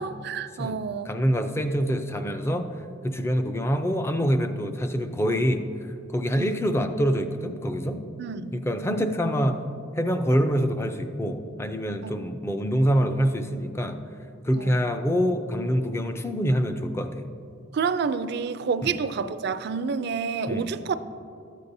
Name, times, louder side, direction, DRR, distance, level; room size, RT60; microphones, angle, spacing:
voice 1, 0.0-1.1 6.4-6.6 8.2-8.5 12.0-12.1 14.5-14.8 17.7-20.9, right 5 dB, 60° right, 12 dB, 0.4 m, -29 dB
voice 2, 1.1-2.7 3.0-5.6 6.1-8.0 8.5-9.6 10.0-14.0 14.4-17.3 18.8-18.9 20.5-20.7, equal, 15° left, 7 dB, 0.4 m, -25 dB
13.0 x 8.3 x 2.7 m, 2.5 s
head